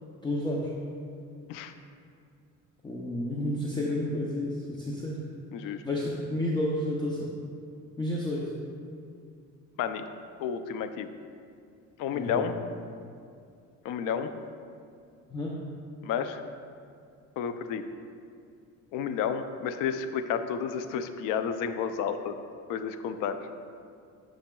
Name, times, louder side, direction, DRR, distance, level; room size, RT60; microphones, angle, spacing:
voice 1, 0.2-0.7 2.8-5.2 5.6-7.3 8.0-8.5 12.1-12.4 15.3-15.6, left 1 dB, 15° left, -3 dB, 0.6 m, -31 dB
voice 2, 5.5-5.8 9.8-10.0 10.4-11.1 12.0-12.5 13.8-14.3 16.0-16.4 17.4-17.8 18.9-22.4 22.7-23.5, left 7 dB, 85° left, 9 dB, 0.5 m, -31 dB
10.0 x 6.3 x 2.3 m, 2.4 s
cardioid pair, 140°, 31 cm